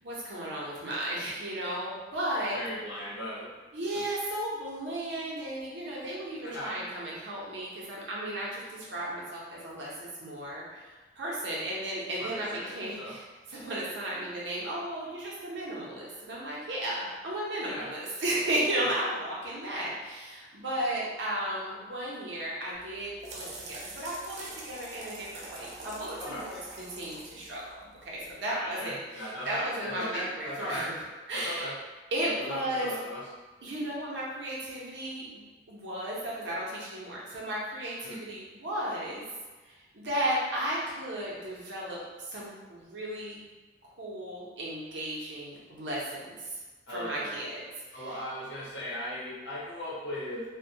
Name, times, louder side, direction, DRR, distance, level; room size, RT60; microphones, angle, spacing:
voice 1, 0.0-2.6 3.7-31.7 32.1-32.9 33.6-35.4 35.7-39.2 39.6-43.4 44.0-46.6 46.9-47.6 47.9-48.2, right 1 dB, 75° right, -6 dB, 0.7 m, -34 dB
voice 2, 2.5-3.5 6.4-6.8 12.2-13.1 17.6-17.9 26.2-26.4 28.5-30.9 31.3-31.7 32.4-33.2 38.0-38.2 46.9-47.3 47.9-50.4, left 1 dB, 90° left, -7 dB, 0.9 m, -37 dB
sound 1, 22.7-28.3, right 2 dB, 40° right, 0.3 m, -45 dB
2.2 x 2.1 x 2.7 m, 1.3 s
head